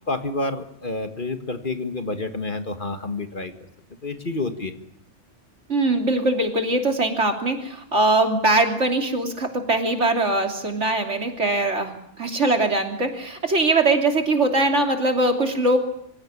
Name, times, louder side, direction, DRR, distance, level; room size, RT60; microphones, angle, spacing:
voice 1, 0.1-3.5 4.0-4.8, left 2 dB, 45° left, 7 dB, 1.9 m, -29 dB
voice 2, 5.7-15.8, right 2 dB, 70° right, 4 dB, 3.4 m, -21 dB
25.5 x 16.5 x 10.0 m, 0.73 s
omnidirectional pair, 1.2 m